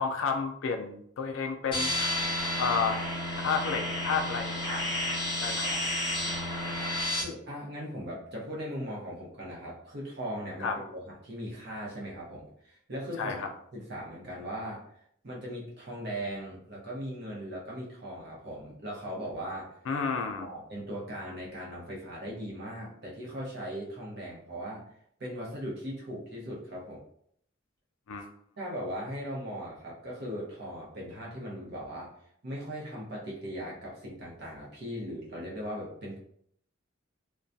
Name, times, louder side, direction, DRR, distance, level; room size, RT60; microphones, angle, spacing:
voice 1, 0.0-2.1 2.6-3.0 3.4-4.8 5.4-5.9 10.6-10.8 13.2-13.5 19.9-20.5 28.1-28.3, left 5 dB, 70° left, 5 dB, 0.3 m, -31 dB
sound 1, 1.7-7.2, left 1 dB, 25° left, 0.6 m, -31 dB
voice 2, 6.0-6.3 7.2-13.4 13.7-14.8 15.2-19.7 20.4-24.9 25.2-27.0 28.6-32.1 32.4-36.2, equal, 55° right, -4 dB, 0.8 m, -39 dB
2.3 x 2.2 x 2.6 m, 0.67 s
head